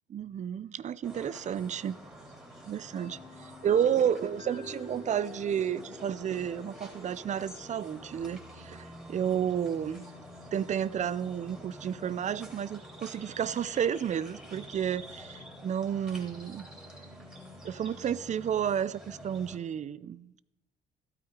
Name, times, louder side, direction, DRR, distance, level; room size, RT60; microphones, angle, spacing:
voice 1, 0.1-2.0 2.6-10.1 10.5-16.7 17.6-20.4, right 9 dB, 40° right, 19 dB, 0.5 m, -31 dB
sound 1, 1.0-19.6, equal, 5° right, 3.7 m, -48 dB
sound 2, 3.0-10.6, left 3 dB, 30° left, 2.4 m, -50 dB
13.0 x 12.5 x 5.0 m, 0.93 s
cardioid pair, 85°, 18 cm